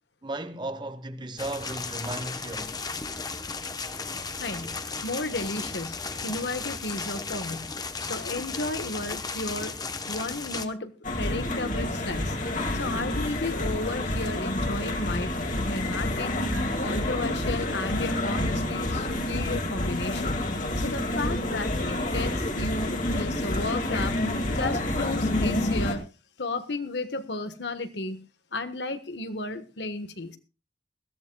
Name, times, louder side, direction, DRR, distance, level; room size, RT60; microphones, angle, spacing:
voice 1, 0.2-2.7, right 1 dB, 25° right, 1.1 m, -35 dB
sound 1, 1.4-10.7, left 4 dB, 20° left, 1.0 m, -35 dB
voice 2, 4.4-7.7 8.0-9.8 10.1-12.4 12.7-16.3 16.8-20.4 20.8-24.2 24.5-26.1 26.4-28.2 28.5-30.4, left 2 dB, 80° left, 1.4 m, -33 dB
sound 2, 11.0-26.0, left 1 dB, 45° left, 2.3 m, -28 dB
21.0 x 14.5 x 2.3 m
head